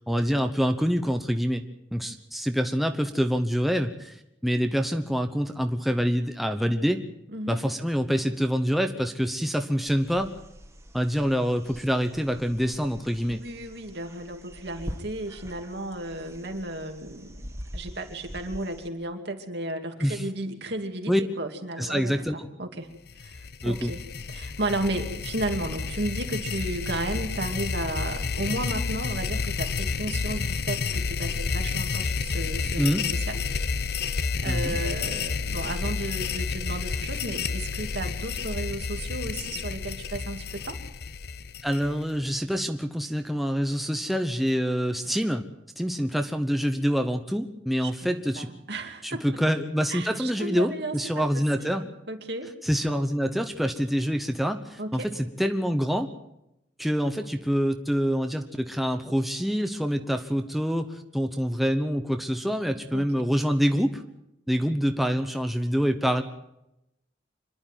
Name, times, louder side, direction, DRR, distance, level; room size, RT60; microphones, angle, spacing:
voice 1, 0.0-1.6 1.9-4.2 4.4-7.0 7.5-10.3 10.9-13.4 20.0-20.2 21.1-21.2 21.8-22.5 23.6-23.9 32.8-33.0 34.5-34.8 41.6-45.5 45.8-48.5 49.0-51.9 52.6-56.1 56.8-64.0 64.5-66.2, equal, ahead, 5 dB, 0.9 m, -26 dB
sound 1, 9.9-18.9, equal, 15° right, 1.8 m, -44 dB
voice 2, 13.3-17.4 17.7-22.9 23.2-23.4 23.6-24.0 24.3-33.4 34.4-40.8 47.8-49.2 49.9-52.5 54.8-55.1 62.9-63.2, right 1 dB, 65° right, 4 dB, 2.5 m, -34 dB
sound 2, 23.1-42.2, left 5 dB, 60° left, 0.7 m, -30 dB
26.0 x 11.5 x 9.2 m, 0.85 s
head